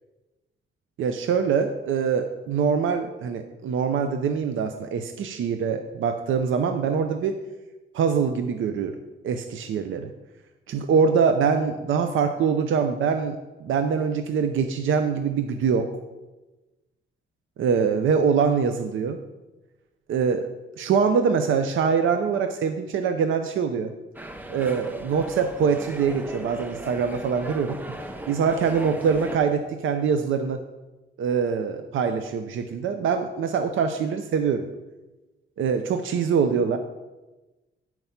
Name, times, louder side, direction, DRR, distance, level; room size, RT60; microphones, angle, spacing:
voice 1, 1.0-7.4 7.9-9.0 9.2-10.1 10.7-15.9 17.6-19.2 20.1-20.5 20.8-23.9 24.5-27.8 28.3-30.6 31.2-34.7 35.6-36.8, right 6 dB, 90° right, 7 dB, 0.6 m, -24 dB
sound 1, 24.1-29.4, right 1 dB, 10° right, 0.5 m, -38 dB
9.2 x 4.6 x 5.6 m, 1.1 s
wide cardioid pair, 140°, 20 cm